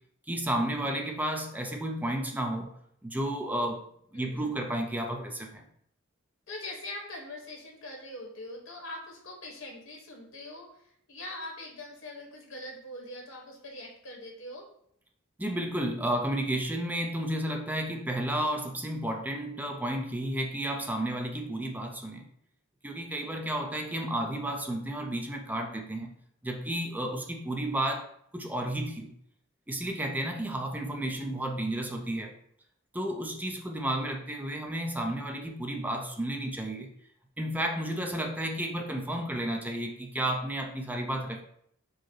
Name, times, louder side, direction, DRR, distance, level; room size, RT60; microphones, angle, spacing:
voice 1, 0.3-2.7 3.0-3.9 4.1-5.6 15.4-22.3 22.8-26.1 26.4-29.1 29.7-32.4 32.9-36.9 37.4-41.4, right 1 dB, 10° right, 3 dB, 0.4 m, -32 dB
voice 2, 4.1-4.5 6.5-14.6, left 1 dB, 80° left, 0 dB, 1.2 m, -42 dB
4.6 x 2.0 x 4.4 m, 0.67 s
head